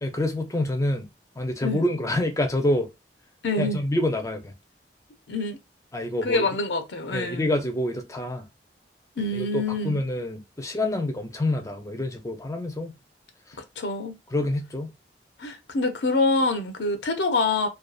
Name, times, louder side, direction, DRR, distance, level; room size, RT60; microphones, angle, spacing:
voice 1, 0.0-1.1 1.4-2.9 3.6-4.5 5.9-6.5 7.1-8.4 9.3-12.9 14.3-14.9, left 1 dB, 20° left, 0.5 m, -27 dB
voice 2, 3.4-3.8 5.3-5.6 6.2-7.5 9.2-10.0 13.8-14.1 15.4-17.7, left 2 dB, 70° left, 0.5 m, -26 dB
2.6 x 2.3 x 2.3 m
head